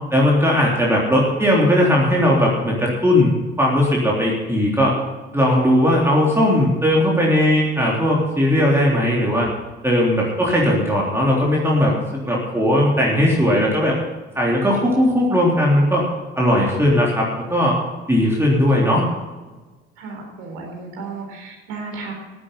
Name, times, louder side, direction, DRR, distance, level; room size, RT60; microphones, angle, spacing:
voice 1, 0.1-4.9 5.3-9.5 9.8-11.9 12.2-14.0 14.4-16.0 16.4-17.8 18.1-19.1, left 1 dB, 10° right, -4 dB, 3.6 m, -18 dB
voice 2, 20.0-22.1, right 4 dB, 70° right, 0 dB, 3.9 m, -34 dB
15.5 x 8.7 x 5.9 m, 1.3 s
figure-of-eight pair, 50°, 31 cm